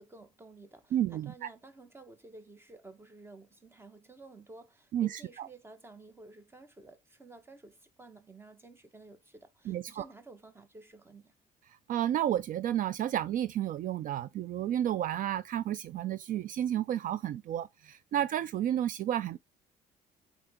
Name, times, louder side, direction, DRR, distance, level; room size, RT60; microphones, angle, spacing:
voice 1, 0.0-11.3, right 2 dB, 15° right, 1.2 m, -53 dB
voice 2, 0.9-1.5 4.9-5.5 9.7-10.0 11.9-19.4, right 11 dB, 55° right, 0.4 m, -31 dB
7.7 x 3.9 x 3.5 m
cardioid pair, 110°, 17 cm